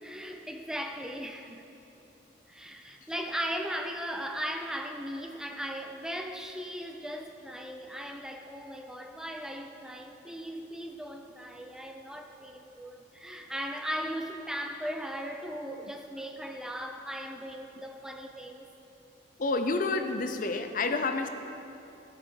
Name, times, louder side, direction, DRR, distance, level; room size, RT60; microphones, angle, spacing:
voice 1, 0.0-1.6 2.5-18.7, equal, 5° right, 3 dB, 0.6 m, -38 dB
voice 2, 19.4-21.3, left 3 dB, 45° left, 7 dB, 0.6 m, -29 dB
14.5 x 8.6 x 4.6 m, 2.9 s
head